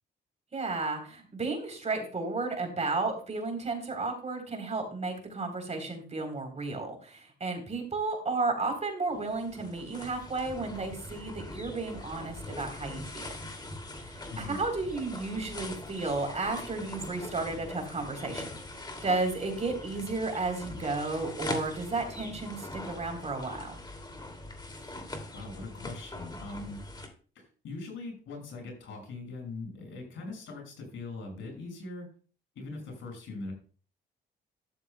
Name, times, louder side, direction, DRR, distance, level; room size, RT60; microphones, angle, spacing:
voice 1, 0.5-13.3 14.0-18.5 18.8-23.8, right 3 dB, 35° right, 4 dB, 3.5 m, -33 dB
sound 1, 9.1-27.1, left 2 dB, 20° left, 2.4 m, -42 dB
voice 2, 14.3-14.6 24.7-25.0 25.3-26.8 27.3-32.1 32.5-33.5, left 3 dB, 75° left, 1 dB, 6.1 m, -41 dB
13.0 x 12.5 x 2.2 m, 0.39 s
cardioid pair, 90°, 20 cm